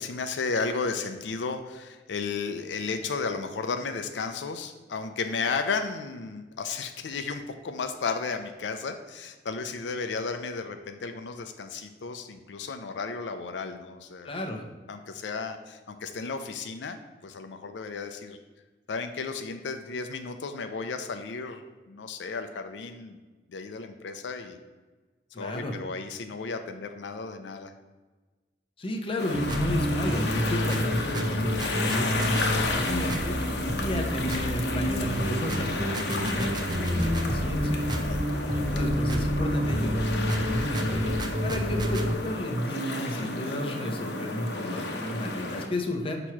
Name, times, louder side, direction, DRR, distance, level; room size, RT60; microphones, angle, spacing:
voice 1, 0.0-14.5 14.9-17.0 17.2-18.4 18.9-23.2 23.5-24.6 25.4-27.7 33.7-34.0 38.0-38.3, left 4 dB, 85° left, 7 dB, 0.5 m, -34 dB
voice 2, 14.2-14.6 25.3-25.8 28.8-33.4 33.8-37.8 38.5-41.0 41.4-46.2, left 1 dB, 30° left, 2 dB, 0.8 m, -32 dB
sound 1, 29.2-45.7, left 2 dB, 65° left, 0.8 m, -32 dB
sound 2, 29.3-42.2, equal, 25° right, 0.6 m, -28 dB
6.3 x 3.0 x 5.8 m, 1.3 s
head